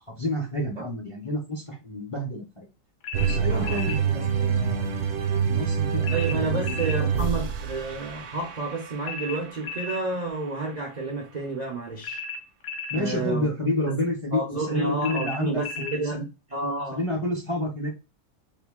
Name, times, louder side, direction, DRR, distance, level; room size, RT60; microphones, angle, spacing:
voice 1, 0.2-2.7 3.2-4.9 5.5-7.2 12.9-16.2 16.9-17.9, left 1 dB, 40° left, 0.4 m, -30 dB
sound 1, 3.0-4.0 6.0-7.0 9.0-10.0 12.0-13.1 15.0-16.0, left 4 dB, 60° left, 0.8 m, -35 dB
sound 2, 3.1-9.5, right 7 dB, 75° right, 1.1 m, -26 dB
voice 2, 3.5-3.8 6.1-12.2 12.9-13.5 13.9-14.0 14.3-17.0, right 3 dB, 60° right, 0.4 m, -30 dB
2.7 x 2.5 x 3.6 m
omnidirectional pair, 1.6 m